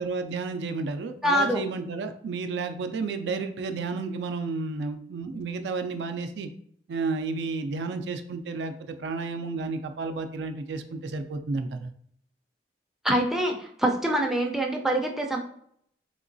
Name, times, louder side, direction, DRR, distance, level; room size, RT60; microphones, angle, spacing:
voice 1, 0.0-6.5 6.9-11.9, right 4 dB, 75° right, 7 dB, 0.4 m, -32 dB
voice 2, 1.2-1.6 13.0-15.4, right 1 dB, ahead, 1 dB, 0.3 m, -25 dB
3.6 x 3.0 x 2.5 m, 0.67 s
head